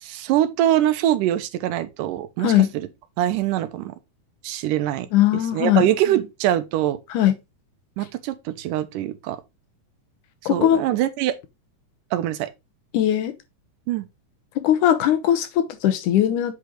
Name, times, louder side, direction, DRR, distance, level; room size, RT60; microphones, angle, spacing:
voice 1, 0.0-2.5 3.2-4.0 4.4-5.1 5.5-7.0 8.0-9.4 10.5-11.3 12.1-12.5 13.9-14.1, right 12 dB, 85° right, 2.3 m, -23 dB
voice 2, 2.4-2.7 5.1-5.9 7.1-7.3 10.5-10.8 12.9-13.3 14.6-16.5, left 11 dB, 75° left, 2.4 m, -19 dB
8.3 x 3.7 x 4.5 m
omnidirectional pair, 3.7 m